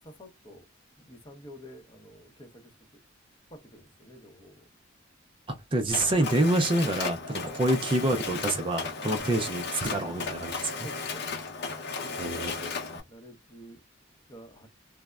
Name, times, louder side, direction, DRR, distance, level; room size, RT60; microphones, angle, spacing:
voice 1, 0.0-0.7 1.0-2.7 3.5-4.7 7.5-7.6 9.1-9.3 10.8-11.3 12.0-12.7 13.1-13.8 14.3-14.7, equal, 25° left, 0.7 m, -49 dB
voice 2, 5.5-10.9 12.2-13.0, right 1 dB, 25° right, 0.4 m, -27 dB
Mechanisms, 5.9-13.0, left 4 dB, 60° left, 0.7 m, -35 dB
3.2 x 2.0 x 2.3 m
head